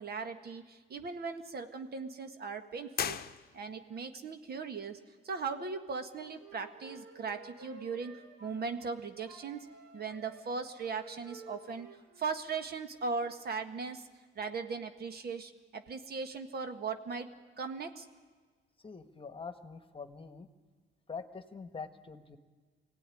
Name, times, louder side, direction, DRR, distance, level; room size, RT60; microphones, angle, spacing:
voice 1, 0.0-3.2 3.5-5.0 5.2-9.7 9.9-11.9 12.2-14.1 14.4-17.3 17.6-18.1, right 5 dB, 50° right, 8 dB, 1.7 m, -38 dB
sound 1, 2.9-4.0, left 8 dB, 50° left, 0.9 m, -37 dB
Wind instrument woodwind instrument, 5.9-9.0 9.2-12.6, right 3 dB, 80° right, 4.8 m, -54 dB
voice 2, 18.8-20.5 21.1-22.4, left 5 dB, 25° left, 9 dB, 1.5 m, -44 dB
22.5 x 17.0 x 10.0 m, 1.5 s
cardioid pair, 90°, 20 cm